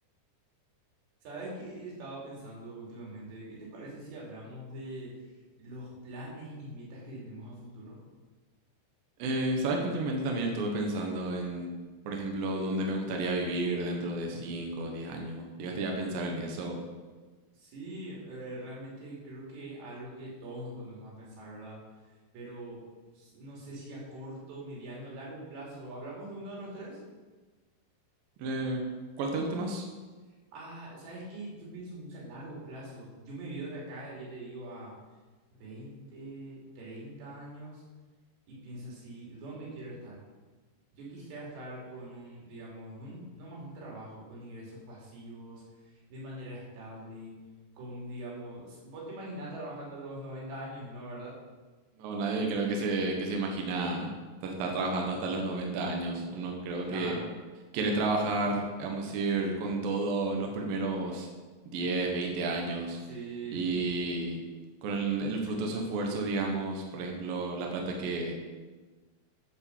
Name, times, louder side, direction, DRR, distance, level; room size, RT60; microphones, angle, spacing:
voice 1, 1.2-5.1 5.6-8.0 17.5-21.8 22.3-22.8 23.2-27.0 30.5-34.9 35.6-37.8 38.5-40.2 40.9-45.6 46.1-47.3 47.8-51.4 56.9-57.3 63.1-63.6, right 1 dB, 85° right, -5 dB, 5.1 m, -43 dB
voice 2, 9.2-11.7 12.1-16.8 28.4-28.8 29.2-29.8 52.0-54.1 54.4-57.2 57.7-61.3 61.7-63.0 63.5-64.4 64.8-68.3, right 2 dB, 65° right, 1 dB, 2.8 m, -31 dB
11.0 x 5.3 x 7.2 m, 1.3 s
omnidirectional pair, 4.8 m